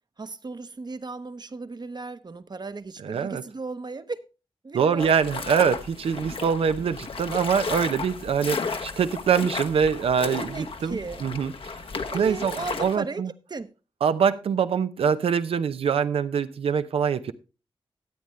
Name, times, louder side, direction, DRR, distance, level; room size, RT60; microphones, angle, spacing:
voice 1, 0.2-4.2 4.6-5.5 10.3-11.3 12.1-13.2 13.5-13.7, right 3 dB, 50° right, 0.9 m, -36 dB
voice 2, 3.0-3.4 4.7-11.5 12.1-13.3 14.0-17.3, right 7 dB, 90° right, 0.7 m, -24 dB
sound 1, 5.0-13.0, left 4 dB, 70° left, 1.1 m, -34 dB
13.0 x 8.7 x 3.2 m
cardioid pair, 45°, 10 cm